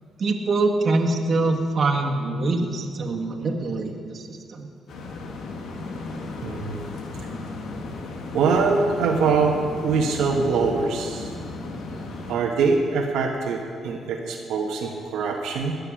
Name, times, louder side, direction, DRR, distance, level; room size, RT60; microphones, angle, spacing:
voice 1, 0.2-4.7, right 2 dB, 50° right, 1 dB, 1.7 m, -24 dB
sound 1, 4.9-12.4, left 3 dB, 70° left, 1.6 m, -35 dB
voice 2, 6.4-6.8 8.3-11.3 12.3-15.8, right 4 dB, 85° right, 0 dB, 1.3 m, -23 dB
18.5 x 6.6 x 6.3 m, 2.2 s
cardioid pair, 90°, 0 cm